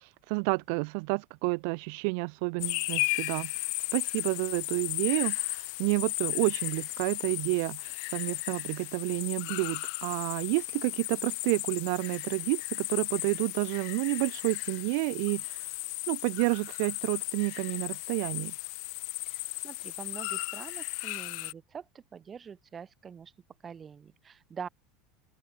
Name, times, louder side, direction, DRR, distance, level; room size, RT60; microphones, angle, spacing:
voice 1, 0.0-15.8 16.1-18.5, right 36 dB, 70° right, 0.8 m, -30 dB
sound 1, 2.6-21.5, left 40 dB or more, 65° left, 1.8 m, -35 dB
voice 2, 19.2-23.3 23.6-24.7, right 7 dB, 25° right, 4.8 m, -45 dB
open air
supercardioid pair, 135°, 0 cm